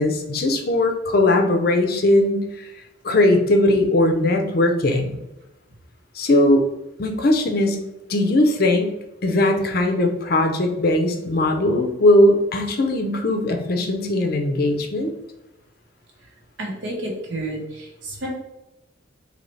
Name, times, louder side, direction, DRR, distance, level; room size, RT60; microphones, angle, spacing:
voice 1, 0.0-2.7 3.0-5.1 6.1-6.7 7.0-7.8 8.1-8.9 9.2-15.1, left 1 dB, 50° left, 4 dB, 0.5 m, -19 dB
voice 2, 16.6-18.3, right 1 dB, 70° right, 0 dB, 1.0 m, -30 dB
4.0 x 2.8 x 3.1 m, 0.96 s
head